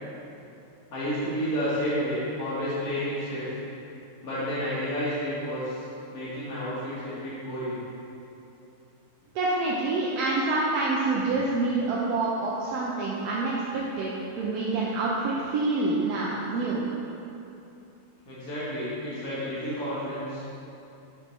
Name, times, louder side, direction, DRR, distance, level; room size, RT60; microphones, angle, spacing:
voice 1, 0.9-3.5 4.2-5.9 6.1-7.8 18.3-20.4, equal, 80° left, -10 dB, 1.9 m, -30 dB
voice 2, 9.3-16.8, right 3 dB, 85° right, -5 dB, 1.2 m, -27 dB
6.0 x 5.3 x 3.1 m, 2.8 s
omnidirectional pair, 1.6 m